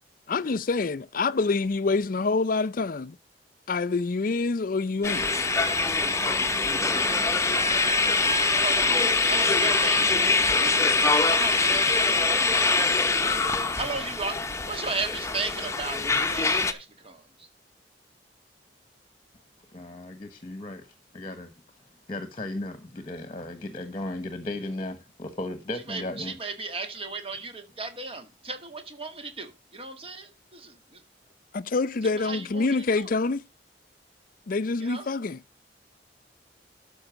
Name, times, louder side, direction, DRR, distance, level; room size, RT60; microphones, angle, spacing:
voice 1, 0.3-3.2 3.7-5.3 31.5-33.4 34.5-35.4, left 3 dB, 50° left, 0.5 m, -26 dB
sound 1, 5.0-16.7, left 3 dB, 15° left, 0.9 m, -23 dB
voice 2, 9.3-12.6 13.6-14.4 14.7-17.5 25.9-31.0 32.0-33.1 34.8-35.1, right 3 dB, 35° right, 2.0 m, -36 dB
voice 3, 19.7-20.9 21.1-21.5 22.1-26.3, left 1 dB, 30° left, 1.3 m, -35 dB
13.0 x 5.3 x 5.0 m
head